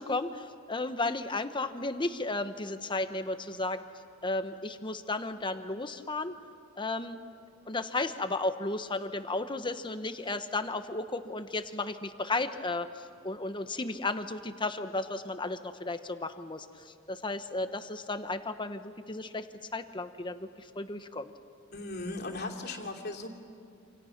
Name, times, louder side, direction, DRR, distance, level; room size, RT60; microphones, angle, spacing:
voice 1, 0.0-3.8 4.2-6.4 6.8-7.2 7.7-19.5 19.7-21.3, left 2 dB, 25° left, 9 dB, 1.1 m, -34 dB
voice 2, 21.7-23.3, left 2 dB, 55° left, 1 dB, 3.0 m, -37 dB
28.0 x 27.0 x 5.9 m, 2.5 s
head